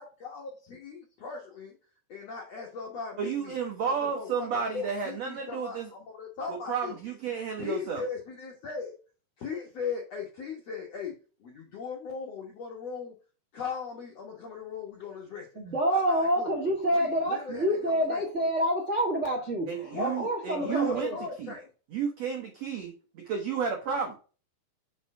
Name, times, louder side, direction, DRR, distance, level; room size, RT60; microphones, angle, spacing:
voice 1, 0.0-1.7 2.1-3.6 3.8-7.0 7.6-8.9 9.4-11.1 11.4-13.1 13.5-15.5 15.9-16.5 16.9-18.2 19.9-20.2 20.6-21.7, left 5 dB, 75° left, 0 dB, 1.5 m, -39 dB
voice 2, 3.2-5.9 6.5-8.0 19.7-21.1 21.4-21.5 21.9-24.2, right 6 dB, 90° right, 2 dB, 1.4 m, -32 dB
voice 3, 15.5-21.2, equal, 55° right, -2 dB, 0.7 m, -27 dB
5.8 x 4.5 x 4.7 m, 0.35 s
omnidirectional pair, 4.7 m